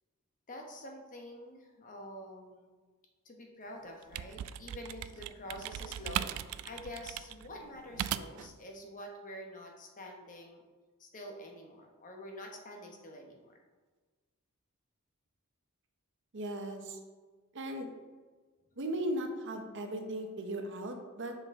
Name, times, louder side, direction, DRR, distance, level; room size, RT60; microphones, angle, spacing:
voice 1, 0.5-2.7 3.2-10.6 11.0-13.6, left 1 dB, 35° left, 2 dB, 0.9 m, -47 dB
sound 1, 3.9-8.5, right 10 dB, 90° right, 0.3 m, -38 dB
voice 2, 16.3-17.0 17.5-17.9 18.8-21.4, right 1 dB, 55° right, 4 dB, 0.8 m, -37 dB
7.1 x 5.5 x 3.6 m, 1.4 s
head